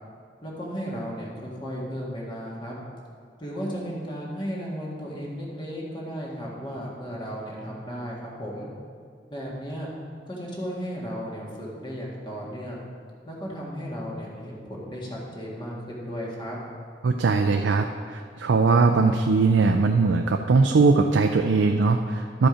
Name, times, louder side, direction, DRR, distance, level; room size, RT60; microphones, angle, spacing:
voice 1, 0.4-2.8 3.4-8.7 9.3-9.9 10.3-12.8 13.3-16.6, equal, 25° left, -4 dB, 1.7 m, -34 dB
voice 2, 17.0-22.5, right 4 dB, 85° right, 5 dB, 0.4 m, -20 dB
12.0 x 5.1 x 5.0 m, 2.2 s
head